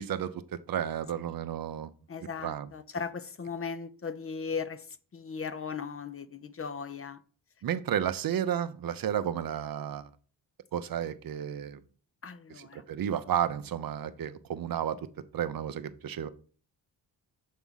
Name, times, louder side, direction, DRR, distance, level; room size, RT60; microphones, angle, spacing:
voice 1, 0.0-1.9 2.4-2.7 7.6-10.0 10.7-11.8 12.6-15.0 15.3-16.3, right 9 dB, 55° right, 0.7 m, -32 dB
voice 2, 2.1-7.2 12.2-12.8, left 5 dB, 30° left, 0.6 m, -37 dB
7.3 x 3.5 x 5.5 m
cardioid pair, 70°, 43 cm